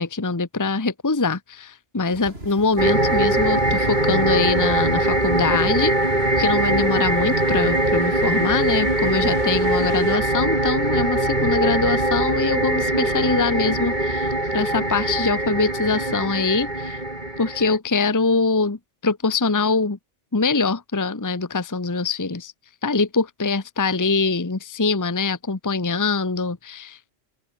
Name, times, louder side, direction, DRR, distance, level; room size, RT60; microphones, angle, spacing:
voice 1, 0.0-5.9 6.4-17.0 17.4-20.0 20.3-22.5 22.8-27.1, left 4 dB, 15° left, 1.0 m, -23 dB
rainy night and cars, 2.1-10.2, right 1 dB, 55° right, 8.3 m, -42 dB
sound 1, 2.8-17.8, right 1 dB, 40° right, 5.7 m, -22 dB
open air
omnidirectional pair, 1.2 m